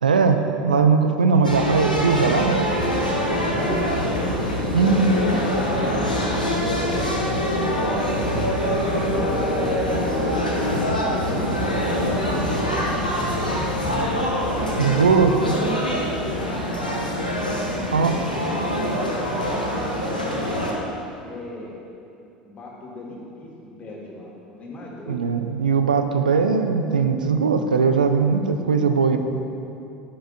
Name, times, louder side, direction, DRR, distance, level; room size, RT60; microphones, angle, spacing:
voice 1, 0.0-2.7 4.7-5.1 14.8-15.5 17.9-18.1 25.1-29.2, right 5 dB, 80° right, 7 dB, 0.5 m, -19 dB
sound 1, 1.4-20.7, equal, 85° left, 1.1 m, -24 dB
voice 2, 3.1-4.0 4.4-10.2 11.1-14.3 14.6-15.6 16.2-17.1 18.0-18.8 19.4-20.6 21.2-21.8 22.4-24.3 24.6-25.2, left 1 dB, 30° left, -3 dB, 2.0 m, -37 dB
10.5 x 10.0 x 2.6 m, 2.7 s
figure-of-eight pair, 70°, 4 cm